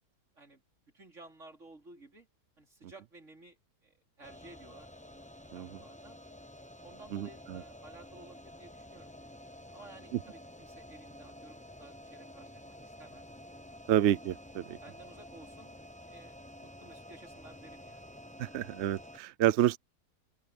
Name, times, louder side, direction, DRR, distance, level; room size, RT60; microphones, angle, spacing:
voice 1, 0.9-2.3 2.6-5.3 5.5-6.2 6.8-9.1 9.7-13.3 14.8-15.7 16.1-18.1, right 2 dB, 45° right, 4.8 m, -55 dB
sound 1, 4.2-19.2, left 1 dB, 10° left, 0.4 m, -50 dB
voice 2, 7.1-7.6 13.9-14.8 18.4-19.8, right 11 dB, 65° right, 0.7 m, -29 dB
open air
omnidirectional pair, 1.8 m